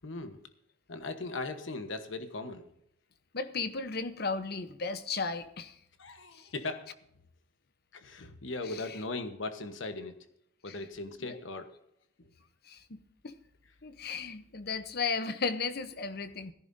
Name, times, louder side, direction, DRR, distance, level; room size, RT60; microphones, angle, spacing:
voice 1, 0.0-0.4 0.9-2.7 6.0-6.9 7.9-10.2 10.6-11.7 12.2-12.3, left 3 dB, 70° left, 8 dB, 1.2 m, -38 dB
voice 2, 3.3-5.8 6.3-6.5 8.7-8.8 10.7-10.8 11.3-11.4 12.6-13.3 13.8-16.5, left 4 dB, 50° left, 11 dB, 0.8 m, -35 dB
16.5 x 14.5 x 2.7 m, 0.75 s
head